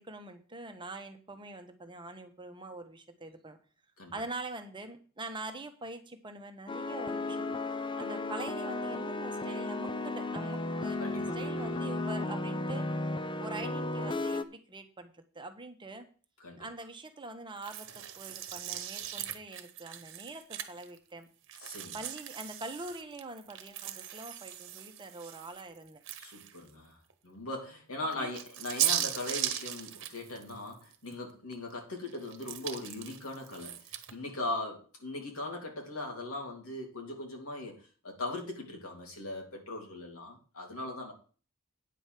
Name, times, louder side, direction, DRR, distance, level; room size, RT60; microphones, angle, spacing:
voice 1, 0.0-3.6 4.1-7.4 8.0-12.9 13.4-16.1 16.6-21.3 21.9-26.0 28.0-28.3, right 2 dB, 20° right, 6 dB, 1.1 m, -44 dB
sound 1, 6.7-14.4, left 2 dB, 25° left, 0.6 m, -34 dB
voice 2, 11.0-11.7 16.4-16.7 21.6-22.0 26.2-27.0 27.2-33.8 34.1-41.1, left 2 dB, 80° left, 1 dB, 3.0 m, -39 dB
sound 2, 17.6-21.0 21.5-26.7 27.1-27.2 28.1-31.1 31.5-34.1, right 11 dB, 60° right, 1.2 m, -38 dB
9.4 x 5.1 x 7.5 m, 0.39 s
head